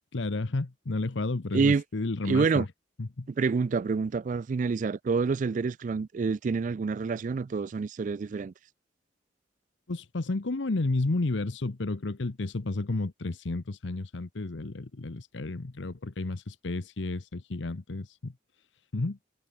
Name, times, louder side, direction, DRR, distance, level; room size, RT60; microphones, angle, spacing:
voice 1, 0.1-2.7 3.0-3.3 9.9-18.3 18.9-19.2, left 2 dB, 70° left, 0.9 m, -32 dB
voice 2, 1.5-1.8 2.2-2.7 3.4-8.5, right 4 dB, 40° right, 0.3 m, -27 dB
head